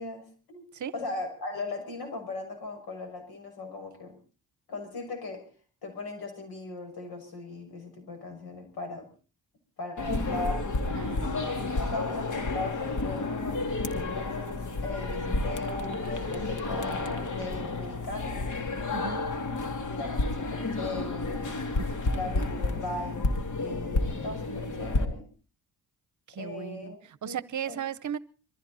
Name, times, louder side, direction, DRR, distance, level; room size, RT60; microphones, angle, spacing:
voice 1, 0.0-0.7 0.9-4.2 4.7-5.4 5.8-9.1 9.8-10.6 11.2-13.6 14.2-18.4 19.9-21.5 22.1-25.3 26.3-27.8, left 2 dB, 85° left, 6.4 m, -38 dB
sound 1, 10.0-25.0, left 3 dB, 50° left, 2.5 m, -31 dB
voice 2, 10.9-11.3 18.9-19.2 21.8-22.0 26.3-26.9 27.2-28.2, right 9 dB, 55° right, 0.8 m, -36 dB
23.0 x 15.0 x 4.2 m
cardioid pair, 75°, 37 cm